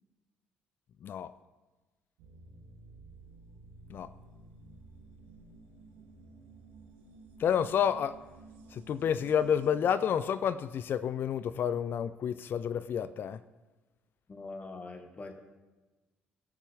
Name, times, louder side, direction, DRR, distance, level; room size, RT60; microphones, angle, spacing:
sound 1, 2.2-9.7, right 3 dB, 75° right, 1.8 m, -53 dB
voice 1, 7.4-8.1 8.7-13.4, left 8 dB, 50° left, 0.4 m, -29 dB
voice 2, 14.3-15.3, left 3 dB, 30° left, 1.3 m, -43 dB
19.5 x 6.9 x 3.4 m
hypercardioid pair, 50°, 5 cm